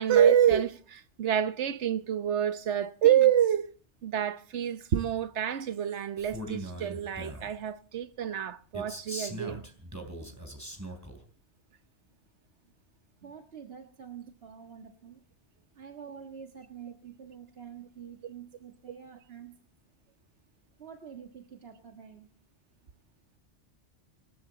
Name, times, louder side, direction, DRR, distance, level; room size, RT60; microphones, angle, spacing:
voice 1, 0.0-3.7 4.0-9.6, right 9 dB, 90° right, 1.2 m, -27 dB
Male speech man speaking, 6.2-7.5 8.7-11.2, right 1 dB, 15° right, 3.5 m, -40 dB
voice 2, 13.2-15.2 15.7-19.6 20.8-22.3, right 7 dB, 65° right, 1.9 m, -47 dB
25.5 x 13.5 x 4.0 m
omnidirectional pair, 1.1 m